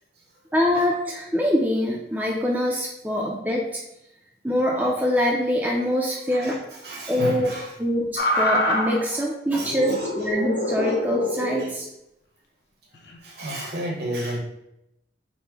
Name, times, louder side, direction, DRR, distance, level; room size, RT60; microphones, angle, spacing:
voice 1, 0.5-3.8 4.4-6.6 7.1-7.5 7.8-11.9, equal, 10° right, -2 dB, 0.4 m, -24 dB
voice 2, 6.3-7.7 9.1-9.2 9.5-10.1 10.8-10.9 11.6-11.7 13.2-14.4, right 1 dB, 65° right, -1 dB, 1.1 m, -32 dB
sound 1, 8.2-9.0 9.6-11.7 12.9-13.2, left 1 dB, 70° left, 0.7 m, -25 dB
4.0 x 2.1 x 4.5 m, 0.82 s
head